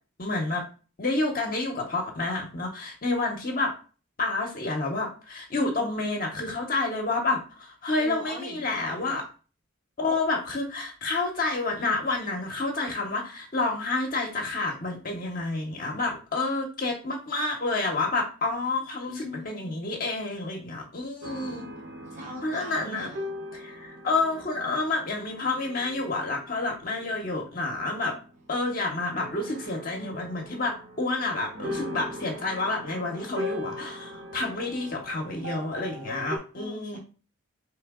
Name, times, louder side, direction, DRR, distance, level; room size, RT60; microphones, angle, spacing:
voice 1, 0.2-0.7 1.0-3.7 4.2-9.2 10.0-21.7 22.4-23.1 23.5-28.1 28.5-37.0, left 3 dB, 45° left, 0 dB, 0.7 m, -29 dB
voice 2, 8.0-9.3 19.1-19.9 22.1-23.2 36.5-37.0, equal, 35° right, -1 dB, 0.8 m, -41 dB
sound 1, 21.2-36.4, left 1 dB, 55° right, 1.1 m, -40 dB
4.3 x 3.2 x 3.5 m, 0.37 s
head